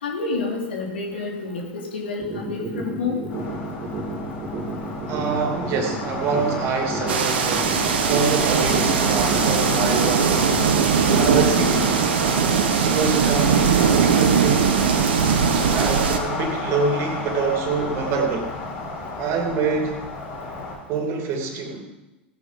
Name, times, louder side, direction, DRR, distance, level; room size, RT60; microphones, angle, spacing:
voice 1, 0.0-3.2, left 3 dB, 80° left, 0 dB, 3.2 m, -28 dB
sound 1, 2.2-12.2, right 3 dB, 30° right, 3.1 m, -31 dB
sound 2, 3.3-20.7, left 3 dB, 65° left, 6.0 m, -31 dB
voice 2, 5.1-12.0 12.8-14.8 15.7-18.5 19.2-20.0 20.9-21.8, right 4 dB, 50° right, 3 dB, 2.8 m, -26 dB
sound 3, 7.1-16.2, right 7 dB, 75° right, 1.4 m, -20 dB
16.5 x 9.5 x 5.2 m, 1.0 s
hypercardioid pair, 90°, 6 cm